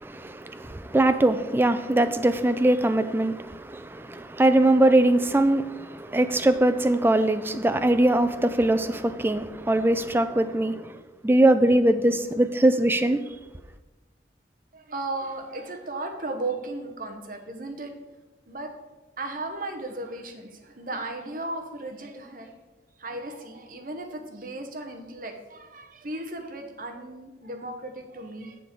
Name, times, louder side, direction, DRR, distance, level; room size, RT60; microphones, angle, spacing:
voice 1, 0.0-10.9 11.2-13.2, right 1 dB, 10° right, 0.3 m, -22 dB
voice 2, 14.7-18.0 18.5-18.7 19.2-22.5 23.0-28.6, right 2 dB, 45° right, 0.9 m, -35 dB
7.2 x 6.7 x 4.5 m
head